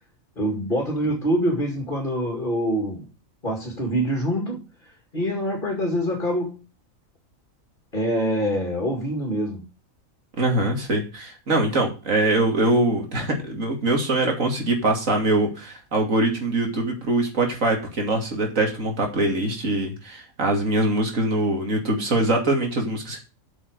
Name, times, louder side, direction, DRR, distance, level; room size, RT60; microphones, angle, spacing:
voice 1, 0.4-3.1 3.4-4.6 5.1-6.6 7.9-9.6, equal, 40° left, 2.6 m, -25 dB
voice 2, 10.4-23.2, right 2 dB, 70° right, 3.1 m, -23 dB
8.5 x 6.5 x 6.4 m
omnidirectional pair, 1.4 m